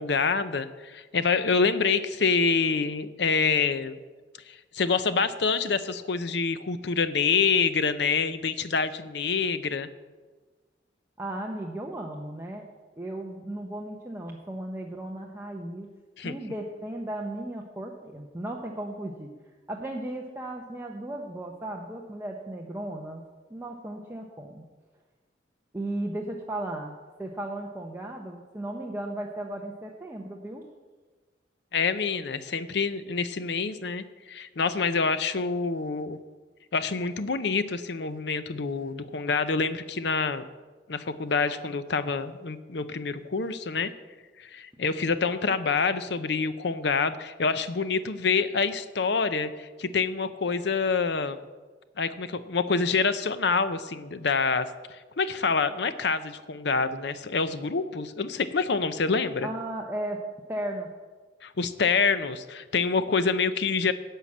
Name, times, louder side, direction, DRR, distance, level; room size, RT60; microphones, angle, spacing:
voice 1, 0.0-4.0 4.7-9.9 16.2-16.3 31.7-36.2 36.7-40.4 40.9-43.9 44.4-51.4 52.0-54.7 55.2-59.5 61.4-63.9, left 5 dB, 70° left, 12 dB, 0.6 m, -26 dB
voice 2, 11.2-12.6 13.0-15.9 16.2-19.3 19.7-23.2 23.5-24.6 25.7-26.9 27.2-30.6 59.4-60.2 60.5-60.9, right 1 dB, 15° right, 0 dB, 0.8 m, -35 dB
11.0 x 5.8 x 8.5 m, 1.3 s
head